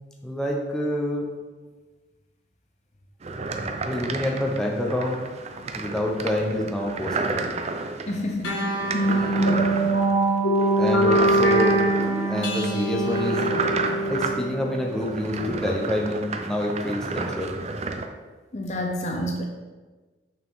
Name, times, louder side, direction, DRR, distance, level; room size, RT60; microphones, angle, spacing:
voice 1, 0.2-1.3 3.9-5.2 5.7-7.4 10.8-11.8 12.2-13.4 14.1-17.5, equal, 5° left, -1 dB, 0.8 m, -27 dB
sound 1, 3.2-18.1, right 3 dB, 35° right, 0.4 m, -32 dB
voice 2, 8.1-8.6 18.5-19.4, left 1 dB, 35° left, 2 dB, 0.6 m, -28 dB
sound 2, 8.4-15.3, right 1 dB, 85° left, 1.3 m, -23 dB
6.6 x 5.9 x 3.6 m, 1.3 s
head